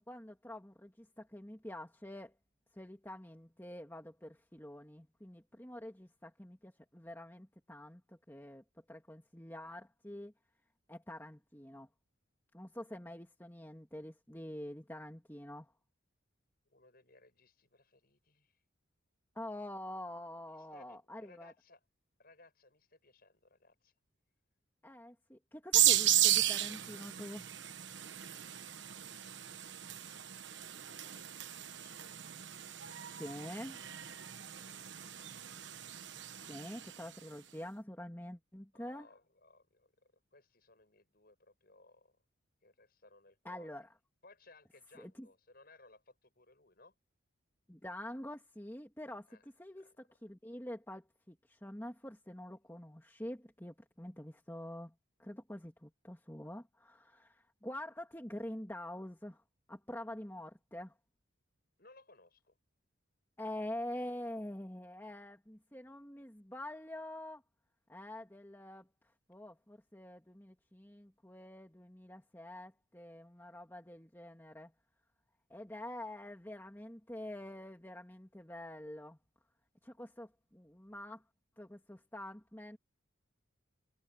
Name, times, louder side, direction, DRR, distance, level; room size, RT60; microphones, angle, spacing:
voice 1, 0.1-2.4 2.7-10.3 10.9-11.9 12.5-15.7 19.4-21.5 24.8-27.4 33.1-33.8 36.4-39.1 43.4-43.9 45.0-45.3 47.7-54.9 55.2-59.4 59.7-60.9 63.4-67.4 67.9-68.9 69.3-74.7 75.5-79.2 79.8-81.2 81.6-82.8, left 1 dB, 10° left, 2.0 m, -46 dB
voice 2, 16.7-18.6 20.4-21.8 22.2-23.9 31.0-32.3 34.5-35.5 38.7-42.2 42.6-43.7 44.2-46.9 49.3-49.4 49.7-49.9 61.8-62.6, left 2 dB, 45° left, 6.7 m, -63 dB
sound 1, 25.7-37.1, right 12 dB, 60° right, 1.2 m, -34 dB
head